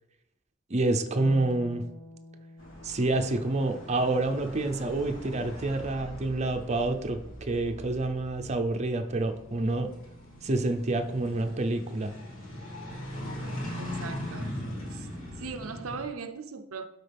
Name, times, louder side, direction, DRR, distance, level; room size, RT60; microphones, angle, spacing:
voice 1, 0.7-1.8 2.8-9.9 10.4-12.1, right 2 dB, 35° right, 0.6 m, -28 dB
Harp, 1.1-7.7 9.3-10.3, equal, 45° left, 1.9 m, -50 dB
sound 1, 2.6-16.1, left 1 dB, 75° left, 3.0 m, -41 dB
voice 2, 13.8-14.5 14.9-15.1 15.4-16.9, right 5 dB, 80° right, 0.6 m, -39 dB
12.0 x 4.6 x 3.4 m
head